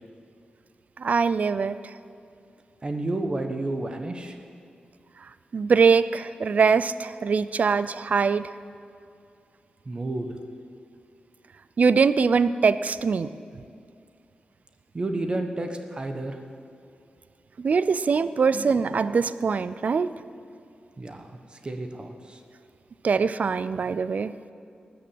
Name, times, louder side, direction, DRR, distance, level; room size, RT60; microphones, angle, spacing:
voice 1, 1.0-1.9 5.5-8.5 11.8-13.3 17.6-20.1 23.0-24.3, right 5 dB, 55° right, 14 dB, 0.5 m, -22 dB
voice 2, 2.8-4.4 9.9-10.3 14.9-16.4 21.0-22.4, right 2 dB, 35° right, 5 dB, 1.2 m, -31 dB
19.0 x 7.1 x 7.8 m, 2.4 s
wide cardioid pair, 100°, 3 cm